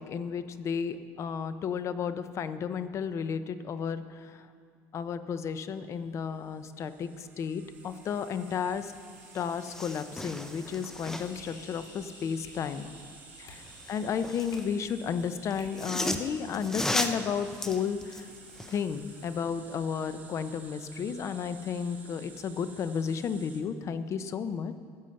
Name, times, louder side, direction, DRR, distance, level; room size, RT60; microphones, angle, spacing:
voice 1, 0.0-4.5 4.9-8.9 9.3-12.9 13.4-18.3 18.7-24.8, left 7 dB, 45° left, 12 dB, 0.7 m, -33 dB
sound 1, 6.3-23.6, right 4 dB, 25° right, 1.5 m, -52 dB
sound 2, 8.9-9.0 9.3-11.5 13.6-14.7 15.5-18.9 19.3-19.4, left 1 dB, 5° left, 0.7 m, -35 dB
sound 3, 11.1-15.7, left 3 dB, 60° left, 2.4 m, -54 dB
15.0 x 7.3 x 6.5 m, 2.2 s
cardioid pair, 125°, 7 cm